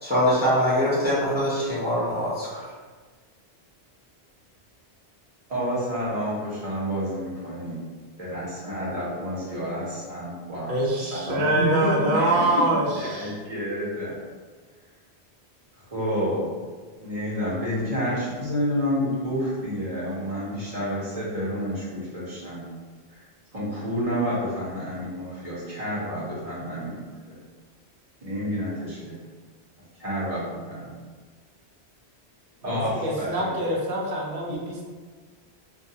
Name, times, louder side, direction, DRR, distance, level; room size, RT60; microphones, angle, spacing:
voice 1, 0.0-2.6, equal, 10° right, -9 dB, 0.5 m, -23 dB
voice 2, 5.5-7.8 8.2-14.1 15.8-16.5 17.0-22.7 23.1-23.2 23.5-27.0 27.2-27.4 28.2-29.1 30.0-30.9 32.6-33.5 34.5-34.6, equal, 35° right, -8 dB, 0.8 m, -29 dB
voice 3, 10.7-13.3 32.6-34.8, right 1 dB, 70° right, -3 dB, 0.9 m, -25 dB
2.3 x 2.2 x 2.7 m, 1.5 s
omnidirectional pair, 1.1 m